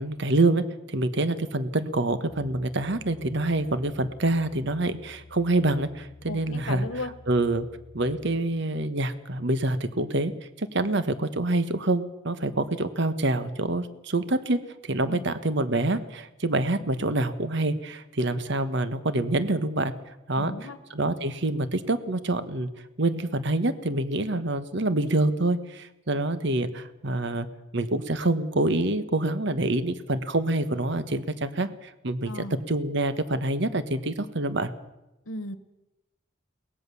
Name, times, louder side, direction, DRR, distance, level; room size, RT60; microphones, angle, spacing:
voice 1, 0.0-7.7 7.9-10.3 10.6-19.9 20.3-22.7 23.0-27.5 27.7-34.7, right 2 dB, 60° right, 12 dB, 1.3 m, -26 dB
sound 1, 2.3-8.4, left 3 dB, 25° left, 0.8 m, -51 dB
voice 2, 6.3-7.1 15.1-15.2 20.4-20.8 32.2-32.6 35.3-35.6, left 2 dB, 85° left, 12 dB, 1.4 m, -35 dB
22.5 x 19.0 x 7.0 m, 0.97 s
head